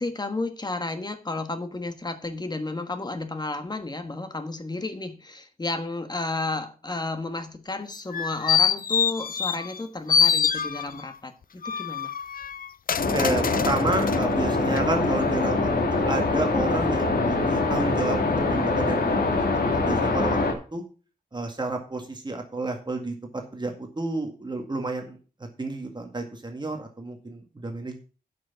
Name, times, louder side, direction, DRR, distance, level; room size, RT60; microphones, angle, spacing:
voice 1, 0.0-12.1, left 2 dB, 25° left, 8 dB, 1.4 m, -32 dB
sound 1, 7.9-9.8 10.1-11.1 11.6-14.2 14.7-14.8, left 7 dB, 70° left, 0.5 m, -25 dB
sound 2, 13.0-20.5, left 3 dB, 85° left, 2.3 m, -24 dB
voice 2, 13.1-19.5 19.7-20.8 21.3-23.1 23.5-25.2 25.6-28.0, right 2 dB, 30° right, 3 dB, 1.9 m, -31 dB
10.5 x 6.1 x 5.7 m, 0.37 s
wide cardioid pair, 110°, 15 cm